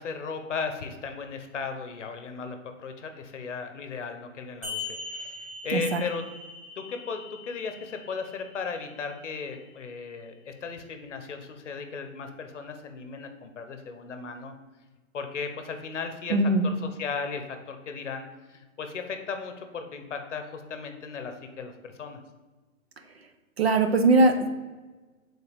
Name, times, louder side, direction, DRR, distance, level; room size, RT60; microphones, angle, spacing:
voice 1, 0.0-6.2 6.8-14.5 15.1-22.2, left 5 dB, 55° left, 7 dB, 0.8 m, -36 dB
sound 1, 4.6-9.6, left 3 dB, 25° right, 1.1 m, -41 dB
voice 2, 16.3-16.6 23.6-24.5, right 2 dB, 50° right, 6 dB, 0.5 m, -21 dB
7.1 x 3.9 x 3.4 m, 1.3 s
hypercardioid pair, 180°, 42 cm